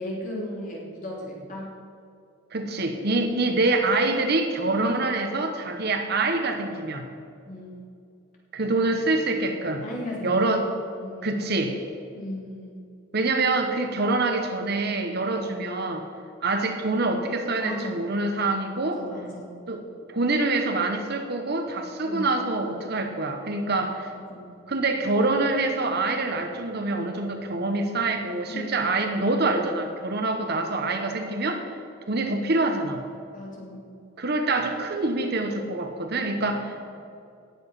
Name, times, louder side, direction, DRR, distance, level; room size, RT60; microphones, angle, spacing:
voice 1, 0.0-1.7 7.4-7.8 9.8-10.4 11.0-11.3 12.1-12.8 15.3-15.4 17.6-18.0 18.9-19.5 22.0-22.4 24.1-24.5 28.5-29.0 33.3-33.8, left 1 dB, 40° left, -3 dB, 3.1 m, -36 dB
voice 2, 2.5-7.1 8.5-9.8 10.2-10.7 11.2-11.8 13.1-16.0 16.4-19.0 19.7-19.8 20.1-24.1 24.7-31.6 32.1-33.0 34.2-36.9, right 2 dB, 55° right, 5 dB, 1.1 m, -25 dB
18.0 x 7.2 x 5.6 m, 2.5 s
head